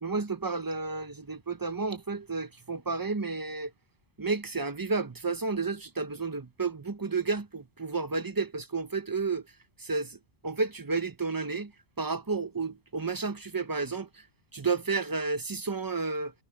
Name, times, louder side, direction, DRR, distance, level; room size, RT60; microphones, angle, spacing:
voice 1, 0.0-3.7 4.2-9.5 9.8-11.7 12.0-14.3 14.5-16.3, right 4 dB, 20° right, 0.9 m, -31 dB
omnidirectional pair, 1.1 m